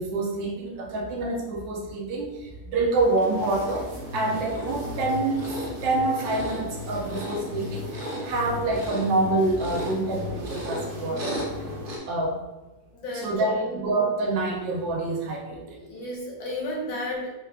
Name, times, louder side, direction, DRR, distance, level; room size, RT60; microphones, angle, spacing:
voice 1, 0.0-2.3 2.7-11.4 12.1-12.4 13.1-15.6, right 2 dB, 85° right, 0 dB, 1.4 m, -27 dB
sound 1, 2.9-12.0, left 1 dB, 60° right, 0.5 m, -34 dB
voice 2, 12.9-13.8 15.5-17.3, left 1 dB, 75° left, -3 dB, 1.8 m, -33 dB
4.6 x 2.3 x 3.4 m, 1.1 s
omnidirectional pair, 2.0 m